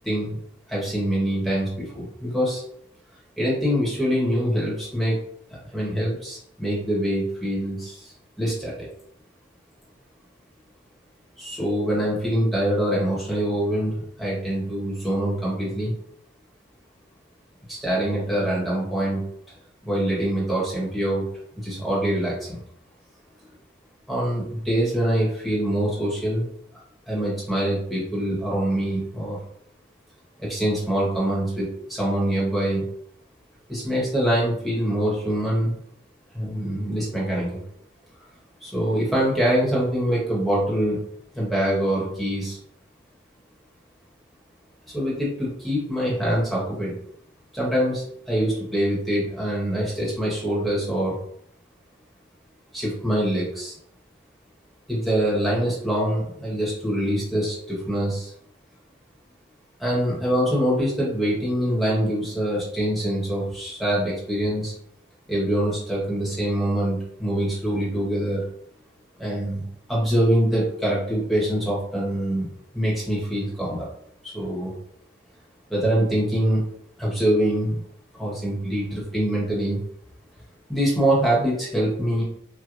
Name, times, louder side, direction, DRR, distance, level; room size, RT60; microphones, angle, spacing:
voice 1, 0.7-2.6 3.4-5.2 5.5-8.9 11.4-15.9 17.7-19.2 19.8-21.2 21.6-22.6 24.1-26.5 27.1-29.4 30.4-32.9 33.7-35.8 36.3-37.6 38.6-41.0 41.3-42.6 44.9-47.0 47.5-51.2 52.7-53.7 54.9-58.3 59.8-64.7 65.3-68.5 69.2-69.6 69.9-72.5 72.7-73.9 74.2-74.7 75.7-76.7 77.0-77.8 78.2-79.8 80.7-82.2, right 1 dB, ahead, -6 dB, 1.1 m, -24 dB
4.5 x 2.2 x 2.5 m, 0.69 s
head